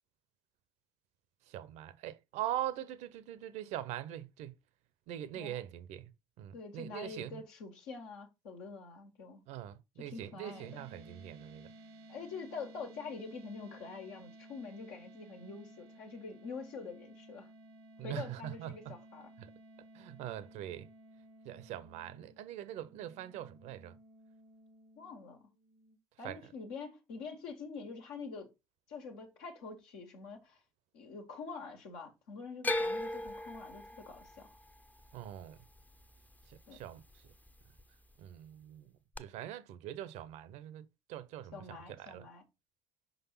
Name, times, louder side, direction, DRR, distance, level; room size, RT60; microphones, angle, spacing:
voice 1, 1.5-4.5 5.1-6.1 6.4-7.4 9.5-11.7 18.0-18.9 19.4-19.5 19.9-20.9 21.4-24.0 26.2-26.4 35.1-35.6 36.5-37.3 38.2-38.9 39.2-42.3, right 12 dB, 65° right, 0.7 m, -42 dB
voice 2, 6.5-9.4 10.0-10.9 12.1-17.5 18.0-19.3 25.0-25.5 26.2-28.5 28.9-30.6 30.9-34.5 36.7-36.8 41.5-42.4, left 4 dB, 75° left, 1.5 m, -46 dB
sound 1, 10.4-26.0, right 1 dB, 80° right, 1.1 m, -56 dB
sound 2, 32.6-36.8 37.1-37.8 39.1-39.2, left 2 dB, 10° left, 0.7 m, -38 dB
5.3 x 4.0 x 5.6 m
hypercardioid pair, 55°, 13 cm